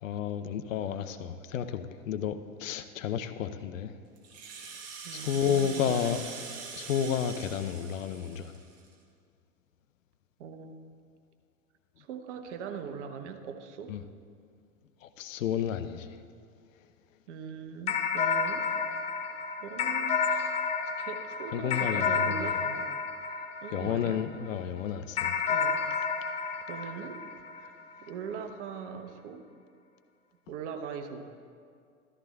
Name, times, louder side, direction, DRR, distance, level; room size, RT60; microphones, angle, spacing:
voice 1, 0.0-3.9 5.1-6.2 6.7-8.6 13.9-14.0 15.0-16.1 21.5-22.6 23.7-25.4, left 8 dB, 65° left, 10 dB, 0.7 m, -31 dB
Rattle (instrument), 4.2-8.9, right 5 dB, 35° right, 1.6 m, -43 dB
voice 2, 5.0-6.2 10.4-10.8 12.0-13.9 17.3-18.7 19.6-20.6 21.0-22.9 23.6-24.2 25.5-25.8 26.7-27.2 27.6-27.7 28.0-29.4 30.5-31.3, right 7 dB, 55° right, 6 dB, 1.0 m, -41 dB
sound 1, 17.9-24.5 25.2-27.9, left 6 dB, 15° left, 0.4 m, -30 dB
13.5 x 13.0 x 2.4 m, 2.2 s
figure-of-eight pair, 90°, 43 cm